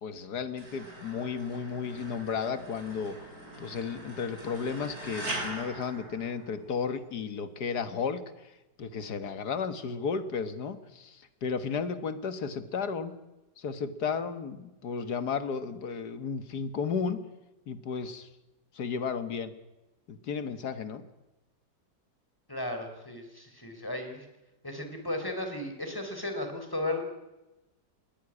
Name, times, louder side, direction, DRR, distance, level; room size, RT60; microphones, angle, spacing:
voice 1, 0.0-3.3 3.6-8.5 8.8-13.1 13.6-17.2 17.7-18.3 18.7-19.5 20.1-21.0, left 6 dB, 65° left, 11 dB, 2.0 m, -33 dB
sound 1, 0.6-6.9, right 2 dB, 55° right, 5.4 m, -42 dB
voice 2, 22.5-24.3 24.6-27.0, left 1 dB, 10° left, 5 dB, 3.9 m, -35 dB
21.5 x 16.5 x 9.9 m, 1.0 s
omnidirectional pair, 1.9 m